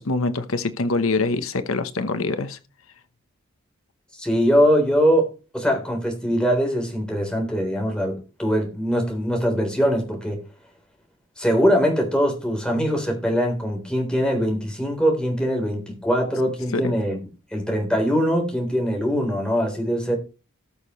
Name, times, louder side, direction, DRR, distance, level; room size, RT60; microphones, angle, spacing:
voice 1, 0.0-2.6 16.7-16.9, left 3 dB, 75° left, 10 dB, 1.0 m, -24 dB
voice 2, 4.1-10.4 11.4-17.2 17.5-20.1, equal, 5° left, 1 dB, 3.6 m, -22 dB
19.0 x 6.6 x 3.1 m, 0.32 s
head